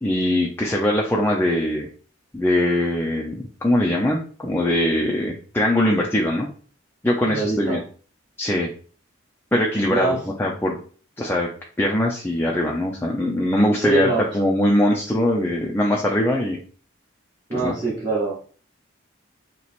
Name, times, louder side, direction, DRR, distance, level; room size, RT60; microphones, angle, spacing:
voice 1, 0.0-1.9 2.3-6.5 7.0-7.8 8.4-8.7 9.5-10.8 11.2-11.5 11.8-16.6 17.5-17.7, left 1 dB, 10° left, -2 dB, 0.5 m, -21 dB
voice 2, 7.2-7.8 9.9-10.2 13.8-14.3 17.5-18.4, right 2 dB, 25° right, -8 dB, 0.9 m, -24 dB
3.0 x 3.0 x 4.2 m, 0.41 s
head